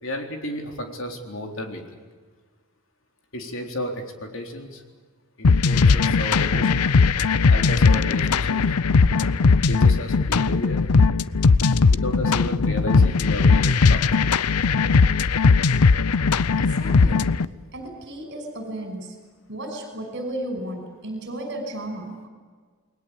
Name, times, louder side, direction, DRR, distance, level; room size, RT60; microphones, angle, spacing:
voice 1, 0.0-2.0 3.3-4.8 5.4-6.9 7.5-8.7 9.2-10.8 11.9-14.0, left 1 dB, 60° left, 3 dB, 4.0 m, -33 dB
sound 1, 5.4-17.5, left 4 dB, 90° left, 0.7 m, -18 dB
voice 2, 16.6-17.2 17.7-19.2 19.5-22.3, right 1 dB, 50° right, 5 dB, 5.8 m, -34 dB
29.0 x 21.0 x 8.4 m, 1.5 s
head